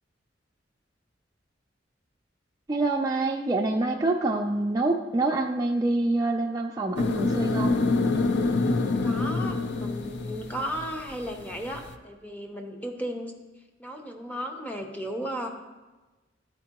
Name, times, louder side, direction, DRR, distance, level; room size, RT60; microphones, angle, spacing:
voice 1, 2.7-7.8, right 2 dB, 20° right, 0 dB, 0.3 m, -26 dB
sound 1, 7.0-11.9, left 3 dB, 65° left, 0.4 m, -26 dB
voice 2, 9.0-13.4 13.8-15.5, equal, 10° left, 2 dB, 0.7 m, -35 dB
12.0 x 4.4 x 2.9 m, 1.2 s
head